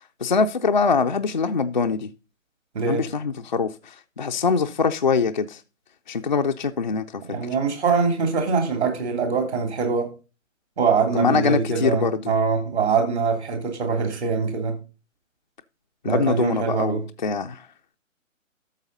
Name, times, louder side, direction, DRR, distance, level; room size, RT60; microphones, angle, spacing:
voice 1, 0.2-2.1 2.9-5.6 6.1-7.4 11.1-12.2 16.0-17.7, left 5 dB, 35° left, 0.4 m, -23 dB
voice 2, 2.7-3.1 7.3-10.1 10.8-14.8 16.0-17.0, right 5 dB, 55° right, 3.2 m, -23 dB
12.0 x 6.8 x 3.9 m
figure-of-eight pair, 135°, 40 cm